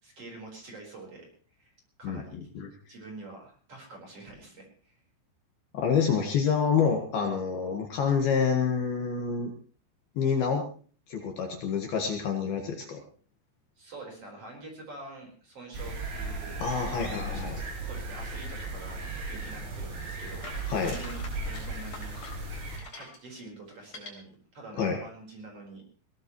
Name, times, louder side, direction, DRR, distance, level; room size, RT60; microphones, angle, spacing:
voice 1, 0.0-1.3 1.6-1.7 2.0-2.5 2.9-5.0 13.8-17.6 17.8-19.0 19.3-20.5 20.8-22.1 22.5-25.8, right 2 dB, 30° right, 1 dB, 5.1 m, -46 dB
voice 2, 2.0-2.7 5.7-9.5 10.2-10.7 11.1-13.0 16.6-17.6 20.7-20.9 24.8-25.0, left 6 dB, 60° left, 3 dB, 3.1 m, -27 dB
sound 1, 15.7-22.8, right 2 dB, 80° right, 7.2 m, -36 dB
sound 2, 20.4-23.2 23.8-24.1, left 3 dB, 35° left, 4.8 m, -44 dB
21.0 x 18.0 x 3.1 m, 0.42 s
omnidirectional pair, 5.5 m